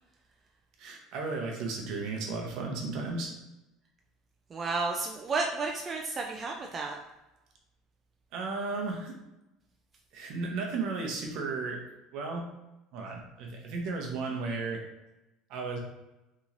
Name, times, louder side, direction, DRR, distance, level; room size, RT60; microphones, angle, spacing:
voice 1, 0.8-3.3 8.3-9.1 10.1-11.8 12.1-12.5 12.9-14.8 15.5-15.8, right 3 dB, 65° right, 1 dB, 0.7 m, -34 dB
voice 2, 4.5-7.0, right 3 dB, 30° right, 1 dB, 0.3 m, -32 dB
2.9 x 2.8 x 2.5 m, 0.98 s
supercardioid pair, 105°, 0 cm